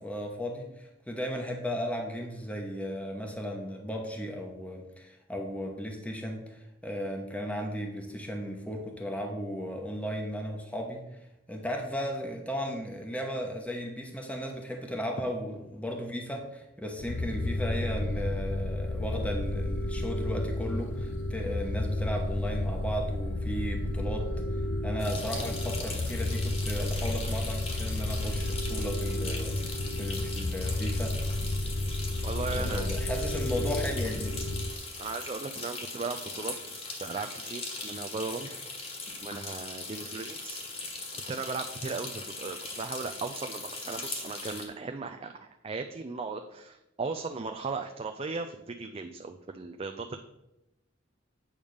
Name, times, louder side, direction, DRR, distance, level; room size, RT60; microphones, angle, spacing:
voice 1, 0.0-11.0 11.5-24.3 24.8-31.2 32.5-34.4, equal, 5° left, 1 dB, 1.0 m, -35 dB
sound 1, 17.0-34.7, left 1 dB, 75° left, 0.6 m, -32 dB
sound 2, 25.0-44.7, left 3 dB, 35° left, 1.5 m, -40 dB
voice 2, 32.2-32.9 35.0-38.5 39.2-40.6 41.1-50.2, right 4 dB, 30° right, 6 dB, 0.4 m, -37 dB
8.7 x 3.5 x 6.4 m, 0.88 s
head